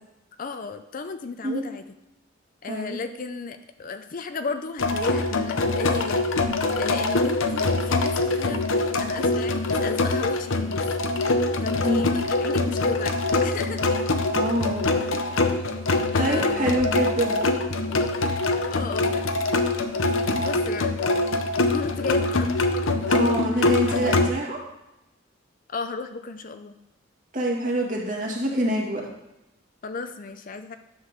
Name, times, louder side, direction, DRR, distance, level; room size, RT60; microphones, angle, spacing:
voice 1, 0.4-1.8 2.6-6.2 6.8-8.7 9.0-10.8 11.6-14.0 16.1-16.8 18.7-19.3 20.4-21.0 21.7-22.5 25.7-26.8 29.8-30.8, left 4 dB, 45° left, 9 dB, 0.5 m, -34 dB
voice 2, 2.7-3.0 11.8-12.0 14.3-14.9 16.2-17.5 23.1-24.6 27.3-29.0, right 1 dB, 40° right, -2 dB, 2.0 m, -26 dB
sound 1, 4.8-24.3, left 2 dB, 85° left, 0.7 m, -24 dB
10.0 x 3.8 x 6.5 m, 0.91 s
head